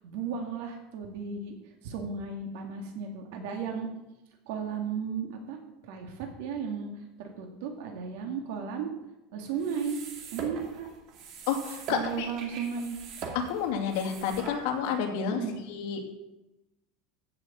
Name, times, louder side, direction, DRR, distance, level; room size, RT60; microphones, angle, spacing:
voice 1, 0.0-1.5 1.8-3.9 4.5-8.9 9.3-10.0 10.3-10.9 11.9-13.0 15.3-15.6, right 6 dB, 70° right, 2 dB, 2.3 m, -35 dB
sound 1, 9.5-15.0, right 5 dB, 45° right, 2.3 m, -42 dB
voice 2, 11.5-12.3 13.5-15.4 15.7-16.0, left 7 dB, 60° left, 2 dB, 2.7 m, -30 dB
15.0 x 6.5 x 7.4 m, 0.95 s
supercardioid pair, 165°, 0 cm